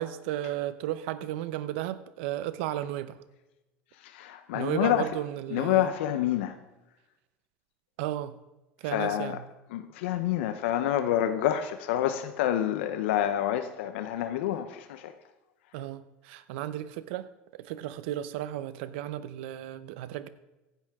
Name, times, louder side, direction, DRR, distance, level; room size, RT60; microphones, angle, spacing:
voice 1, 0.0-3.2 4.5-5.9 8.0-8.4 8.8-9.4 15.7-20.3, right 13 dB, 80° right, 14 dB, 0.8 m, -34 dB
voice 2, 4.0-5.0 5.5-6.5 8.9-9.4 9.7-15.1, left 11 dB, 90° left, 9 dB, 0.8 m, -28 dB
15.0 x 10.5 x 3.6 m, 1.0 s
supercardioid pair, 120°, 6 cm